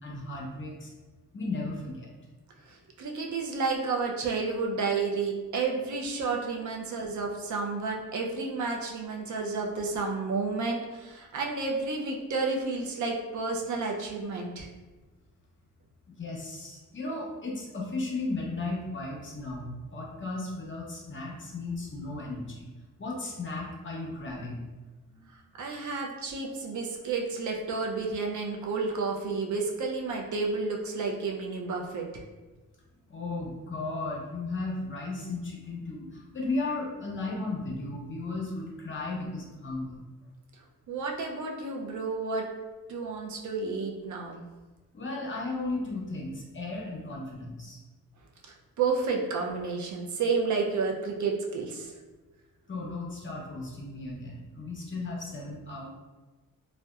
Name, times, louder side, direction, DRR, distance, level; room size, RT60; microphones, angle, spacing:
voice 1, 0.0-0.9 1.3-2.1 16.2-22.7 23.0-24.6 25.1-25.2 33.1-40.0 44.9-47.8 52.7-55.9, left 2 dB, 35° left, -2 dB, 0.7 m, -35 dB
voice 2, 2.7-14.7 25.6-32.2 40.9-42.5 42.9-44.4 48.8-51.9, right 4 dB, 60° right, 0 dB, 0.5 m, -31 dB
2.7 x 2.1 x 2.3 m, 1.2 s
cardioid pair, 80°, 34 cm